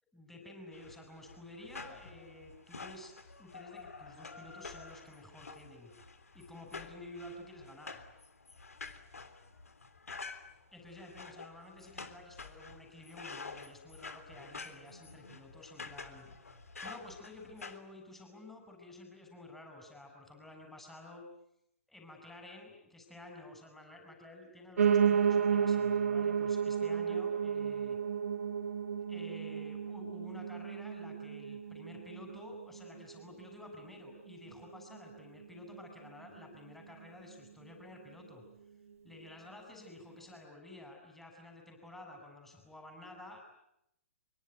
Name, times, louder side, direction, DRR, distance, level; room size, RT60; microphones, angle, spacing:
voice 1, 0.1-3.1 3.4-5.9 6.3-8.0 10.7-21.3 21.9-28.0 29.1-38.4 39.0-43.4, left 2 dB, 5° left, 2 dB, 7.5 m, -51 dB
sound 1, 0.7-17.8, left 4 dB, 90° left, 3.4 m, -49 dB
Piano, 24.8-33.9 34.3-35.4 35.7-35.8 36.0-36.1 36.4-36.5 37.0-37.1, right 7 dB, 75° right, 2.2 m, -32 dB
25.5 x 24.5 x 9.5 m, 0.81 s
hypercardioid pair, 130°, 8 cm